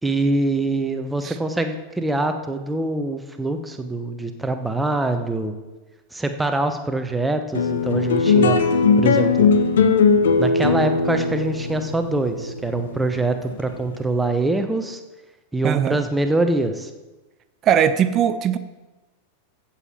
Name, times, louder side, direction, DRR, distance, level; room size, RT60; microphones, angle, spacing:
voice 1, 0.0-5.5 6.1-8.6 9.0-9.5 10.4-15.0 15.5-16.9, right 2 dB, 5° right, 6 dB, 1.0 m, -24 dB
sound 1, 7.5-14.2, left 4 dB, 60° left, 0.8 m, -19 dB
voice 2, 15.6-16.0 17.6-18.6, right 9 dB, 30° right, 11 dB, 0.6 m, -19 dB
15.0 x 7.3 x 4.4 m, 1.2 s
figure-of-eight pair, 90°, 0 cm